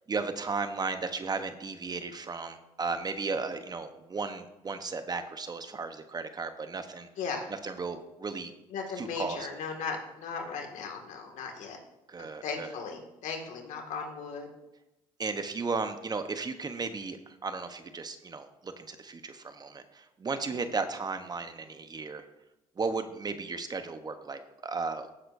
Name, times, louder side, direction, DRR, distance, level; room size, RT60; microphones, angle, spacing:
voice 1, 0.1-7.1 7.5-8.5 9.0-9.5 12.1-12.7 15.2-22.2 22.8-25.1, right 4 dB, 30° right, 9 dB, 0.9 m, -35 dB
voice 2, 7.2-7.5 8.7-11.8 12.4-14.5, left 5 dB, 70° left, 2 dB, 2.0 m, -37 dB
15.5 x 7.6 x 2.6 m, 0.94 s
supercardioid pair, 70°, 13 cm